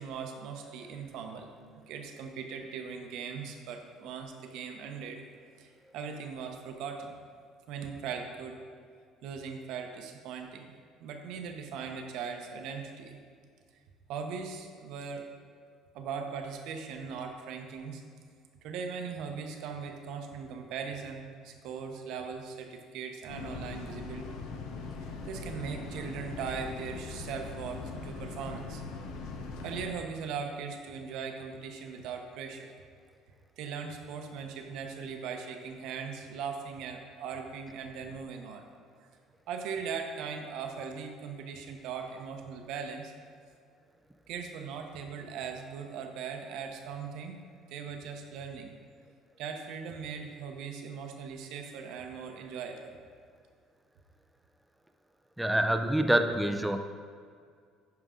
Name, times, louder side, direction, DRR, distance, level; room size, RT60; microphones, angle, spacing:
voice 1, 0.0-1.5 1.9-5.2 5.6-7.2 7.7-8.6 9.2-10.7 11.0-13.2 14.1-15.3 15.9-18.0 18.6-24.4 25.3-28.9 29.6-32.7 33.6-38.6 39.0-39.1 39.5-43.1 44.3-47.4 47.7-48.7 49.4-53.0, right 6 dB, 75° right, 4 dB, 0.9 m, -39 dB
sound 1, 23.3-29.9, left 4 dB, 80° left, 0.9 m, -41 dB
voice 2, 55.4-56.8, right 1 dB, 5° right, 6 dB, 0.5 m, -26 dB
10.5 x 4.9 x 3.8 m, 2.1 s
supercardioid pair, 100°, 0 cm